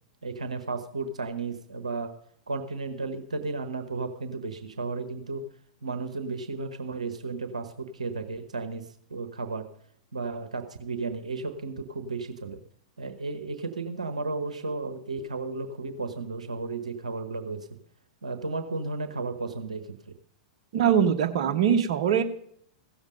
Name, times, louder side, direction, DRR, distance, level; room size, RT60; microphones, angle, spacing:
voice 1, 0.2-2.1 2.5-5.4 5.8-9.7 10.1-12.6 13.0-17.7 18.2-20.1, right 3 dB, 85° right, 8 dB, 1.1 m, -34 dB
voice 2, 20.7-22.2, right 8 dB, 60° right, 4 dB, 1.2 m, -22 dB
16.0 x 7.2 x 5.2 m, 0.66 s
hypercardioid pair, 100°, 4 cm